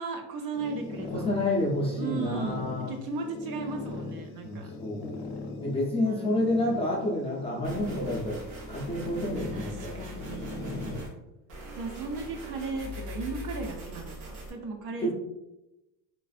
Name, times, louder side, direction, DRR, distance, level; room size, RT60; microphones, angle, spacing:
voice 1, 0.0-1.2 1.9-4.7 6.0-7.0 9.5-11.2 11.8-15.1, right 4 dB, 55° right, 4 dB, 0.5 m, -36 dB
sound 1, 0.5-11.0, left 3 dB, 60° left, 0.6 m, -40 dB
voice 2, 1.1-2.9 4.4-5.2 5.6-8.4 8.7-10.1 10.6-11.1 15.0-15.1, left 1 dB, 15° left, -5 dB, 0.5 m, -29 dB
sound 2, 7.6-11.1 11.5-14.5, equal, 90° right, 1.0 m, -41 dB
3.2 x 2.5 x 2.4 m, 0.94 s
cardioid pair, 150°, 46 cm